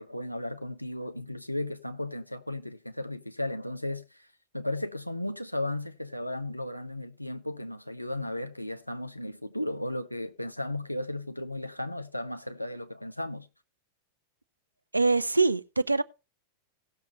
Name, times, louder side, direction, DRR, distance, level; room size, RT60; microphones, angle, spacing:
voice 1, 0.0-4.3 4.5-13.5, left 1 dB, 90° left, 0.9 m, -35 dB
voice 2, 14.9-16.0, right 3 dB, 85° right, 0.5 m, -24 dB
17.0 x 6.6 x 4.1 m
figure-of-eight pair, 90°, 0 cm